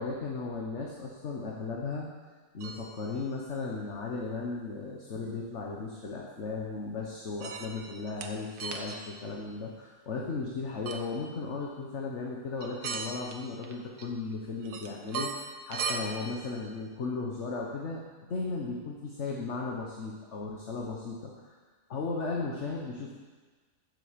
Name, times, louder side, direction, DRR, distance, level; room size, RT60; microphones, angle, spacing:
voice 1, 0.0-2.1 2.5-18.0 18.3-21.6 21.9-23.2, left 3 dB, 50° left, -1 dB, 1.5 m, -36 dB
sound 1, 2.6-3.2 4.4-4.5 5.2-5.3 7.4-8.3 8.6-9.1 10.9-11.1 12.6-13.4 13.6-14.3 14.6-16.0, right 5 dB, 80° right, 1.6 m, -37 dB
14.5 x 7.5 x 5.2 m, 1.4 s
omnidirectional pair, 1.6 m